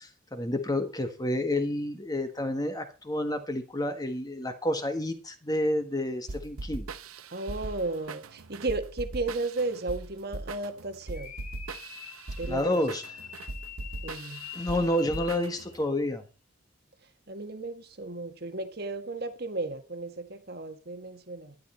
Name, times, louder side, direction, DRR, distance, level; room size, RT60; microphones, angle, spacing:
voice 1, 0.0-6.9 12.5-13.1 14.5-16.2, left 1 dB, 20° left, 1.4 m, -29 dB
sound 1, 6.3-15.8, right 3 dB, 90° right, 0.9 m, -40 dB
voice 2, 7.3-11.3 12.4-12.8 14.0-14.5 17.3-21.6, right 2 dB, 45° right, 1.5 m, -34 dB
sound 2, 11.1-15.8, left 8 dB, 35° left, 2.5 m, -45 dB
12.5 x 11.5 x 4.4 m
head